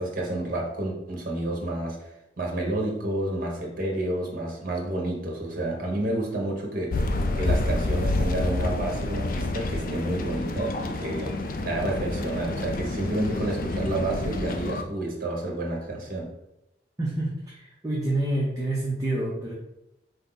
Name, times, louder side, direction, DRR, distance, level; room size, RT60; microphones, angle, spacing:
voice 1, 0.0-2.1 2.4-16.3, right 1 dB, 50° right, 0 dB, 1.0 m, -30 dB
sound 1, 6.9-14.8, left 2 dB, 50° left, 0.4 m, -28 dB
voice 2, 17.0-19.5, right 1 dB, 20° right, -5 dB, 0.6 m, -28 dB
4.5 x 2.7 x 3.8 m, 0.90 s
head